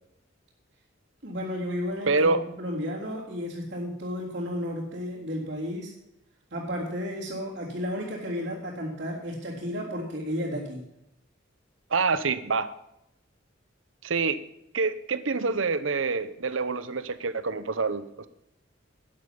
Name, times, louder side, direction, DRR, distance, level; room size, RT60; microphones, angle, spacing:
voice 1, 1.2-5.9 6.5-10.8, equal, 55° right, -8 dB, 3.7 m, -33 dB
voice 2, 2.1-2.4 11.9-12.7 14.0-14.4 14.7-18.3, right 4 dB, 85° right, 13 dB, 0.9 m, -26 dB
12.0 x 10.0 x 5.4 m, 0.83 s
head